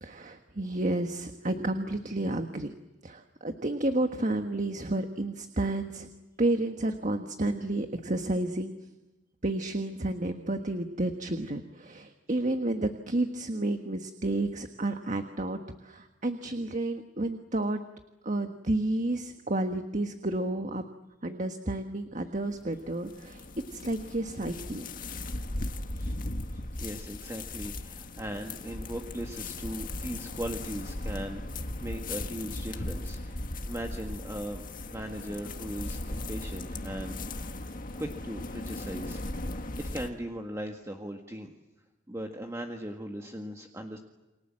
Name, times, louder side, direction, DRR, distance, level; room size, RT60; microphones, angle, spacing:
voice 1, 0.0-2.7 3.0-6.1 6.4-8.7 9.4-17.8 18.2-20.8 21.2-23.4 23.7-24.9, right 2 dB, 40° right, 6 dB, 1.5 m, -31 dB
sound 1, 22.4-40.1, left 2 dB, 45° left, 1.8 m, -37 dB
voice 2, 26.5-33.4 33.6-37.6 38.0-39.2 39.8-41.5 42.1-44.0, equal, 15° right, 2 dB, 1.8 m, -39 dB
29.5 x 25.0 x 7.6 m, 1.0 s
head